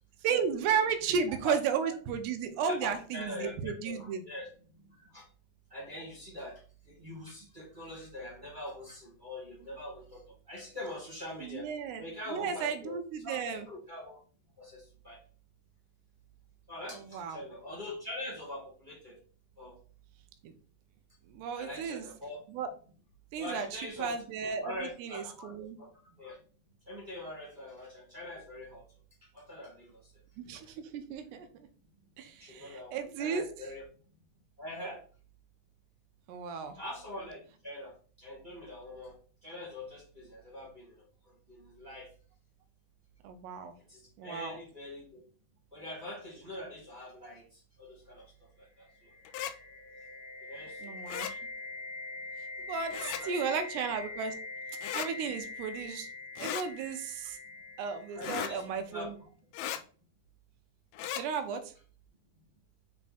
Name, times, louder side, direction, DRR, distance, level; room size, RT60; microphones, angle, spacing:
voice 1, 0.2-4.2 11.4-13.7 16.9-17.4 20.4-20.5 21.3-22.1 22.5-22.7 23.3-24.7 25.0-25.8 30.4-31.5 32.2-33.5 36.3-36.8 43.2-43.7 44.2-44.6 50.8-51.4 52.7-53.0 53.2-54.4 54.9-56.1 56.4-57.4 57.8-59.1 61.2-61.7, right 6 dB, 85° right, 6 dB, 2.9 m, -34 dB
voice 2, 2.6-5.2 5.7-11.7 12.0-13.0 13.2-14.2 14.6-15.2 16.7-19.2 19.6-19.8 21.5-22.4 23.4-24.1 24.6-26.4 26.8-28.8 29.3-30.0 32.4-33.8 34.6-35.0 36.7-39.2 39.4-42.1 43.9-45.2 45.7-49.1 50.5-51.0 52.6-52.7 52.9-53.6 54.0-54.1 58.1-59.1, left 1 dB, 20° right, -5 dB, 1.5 m, -44 dB
sound 1, 48.9-58.7, left 3 dB, 40° left, 1.1 m, -44 dB
sound 2, 49.3-49.5 51.1-51.3 52.9-53.2 54.8-55.1 56.4-56.7 58.2-58.5 59.5-59.8 60.9-61.2, left 11 dB, 85° left, 2.3 m, -36 dB
7.7 x 3.6 x 4.2 m, 0.41 s
omnidirectional pair, 4.8 m